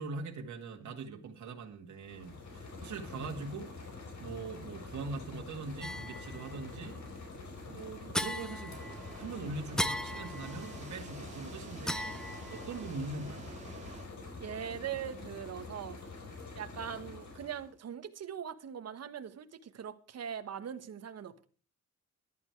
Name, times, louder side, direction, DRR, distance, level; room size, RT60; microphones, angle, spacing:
voice 1, 0.0-3.7 4.2-7.0 7.7-8.8 9.2-12.2 12.5-13.5, right 3 dB, 80° right, 2.0 m, -42 dB
sound 1, 1.9-17.7, left 3 dB, 75° left, 4.8 m, -46 dB
sound 2, 5.8-6.5 8.1-9.2 9.8-10.9 11.9-12.8, left 1 dB, ahead, 0.6 m, -37 dB
sound 3, 8.7-14.0, right 3 dB, 25° right, 3.0 m, -49 dB
voice 2, 14.4-16.0 16.6-21.5, right 8 dB, 60° right, 1.3 m, -41 dB
14.0 x 11.5 x 4.6 m
wide cardioid pair, 155°, 29 cm